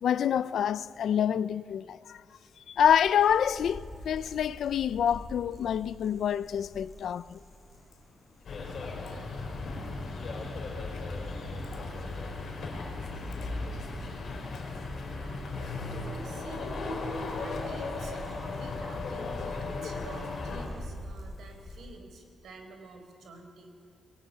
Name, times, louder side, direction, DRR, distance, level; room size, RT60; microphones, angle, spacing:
voice 1, 0.0-2.2 2.7-7.4, left 9 dB, 70° left, 0.6 m, -27 dB
sound 1, 2.8-21.9, left 1 dB, 25° left, 7.0 m, -48 dB
sound 2, 8.4-20.7, left 3 dB, 50° left, 4.9 m, -36 dB
voice 2, 15.1-16.9 17.4-23.9, right 3 dB, 75° right, 4.6 m, -49 dB
25.0 x 21.5 x 9.8 m
wide cardioid pair, 165°, 0 cm